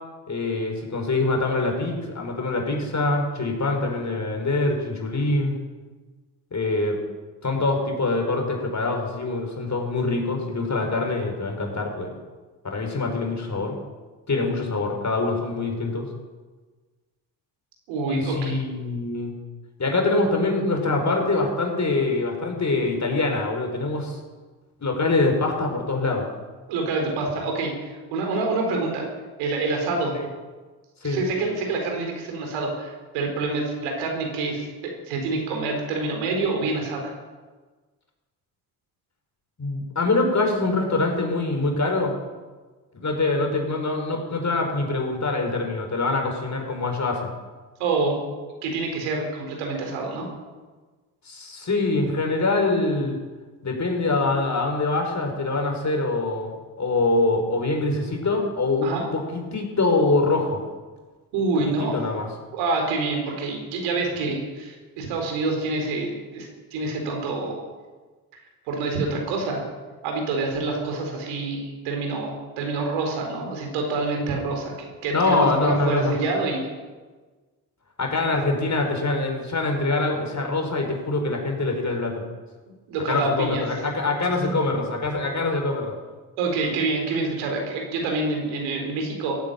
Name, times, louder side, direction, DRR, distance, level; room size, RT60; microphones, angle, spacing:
voice 1, 0.3-5.6 6.5-7.0 7.4-12.1 12.6-13.8 14.3-16.1 18.1-19.3 19.8-24.2 24.8-26.3 30.1-30.3 31.0-31.2 39.6-42.1 42.9-47.3 51.3-53.2 53.6-60.6 61.8-62.3 75.1-76.1 78.0-82.2 83.1-86.0, left 3 dB, 35° left, 2 dB, 5.3 m, -24 dB
voice 2, 17.9-18.6 26.7-29.1 29.4-30.1 31.0-37.1 47.8-48.3 48.6-50.3 58.8-59.0 61.3-62.0 62.5-67.6 68.7-69.6 70.0-76.6 82.9-83.6 86.4-89.4, right 3 dB, 80° right, 2 dB, 4.1 m, -27 dB
16.0 x 10.0 x 8.9 m, 1.3 s
hypercardioid pair, 55°, 46 cm